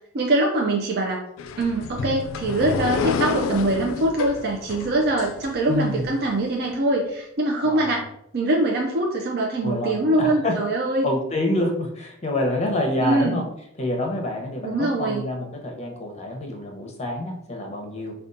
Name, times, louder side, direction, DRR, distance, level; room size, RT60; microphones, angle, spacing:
voice 1, 0.1-1.2 1.6-8.0 8.3-11.1 13.0-13.4 14.6-15.2, right 2 dB, 55° right, -1 dB, 0.5 m, -23 dB
sound 1, 1.4-6.1, left 5 dB, 90° left, 0.3 m, -29 dB
voice 2, 5.7-6.1 7.6-8.0 9.6-10.6 11.0-13.4 13.8-18.1, left 1 dB, 35° left, 2 dB, 0.7 m, -27 dB
5.0 x 2.3 x 2.6 m, 0.75 s
head